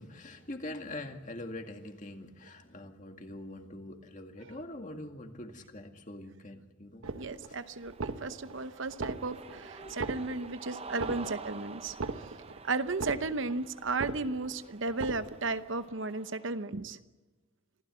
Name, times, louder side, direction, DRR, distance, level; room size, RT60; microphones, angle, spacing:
voice 1, 0.0-7.0 7.5-7.6 9.5-10.0 10.3-10.4 11.1-11.2, left 1 dB, 35° left, 2.1 m, -44 dB
sound 1, 7.0-7.6 7.9-8.6 8.9-9.6 9.9-10.6 10.9-11.6 11.9-12.6 12.9-13.6 13.9-14.6 14.9-15.6, right 3 dB, 80° right, 1.2 m, -38 dB
voice 2, 7.2-12.0 12.6-17.0, right 3 dB, 65° right, 0.9 m, -34 dB
Cheering, 7.4-16.6, right 4 dB, 30° right, 0.7 m, -49 dB
26.0 x 16.0 x 7.7 m
head